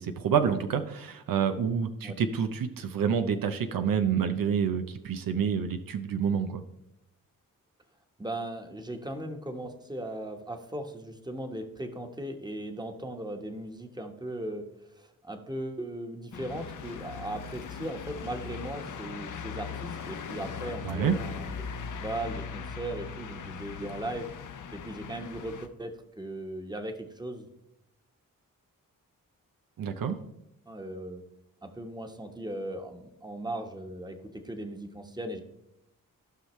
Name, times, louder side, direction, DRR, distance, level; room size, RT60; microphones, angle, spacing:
voice 1, 0.0-6.6 20.8-21.2 29.8-30.2, right 7 dB, 80° right, 8 dB, 0.7 m, -28 dB
voice 2, 8.2-21.5 21.9-24.3 24.7-27.5 30.7-31.2 31.6-35.4, right 1 dB, 10° right, 5 dB, 1.3 m, -38 dB
sound 1, 16.3-25.7, left 6 dB, 60° left, 0.8 m, -39 dB
15.0 x 5.6 x 3.2 m, 0.87 s
cardioid pair, 70°, 34 cm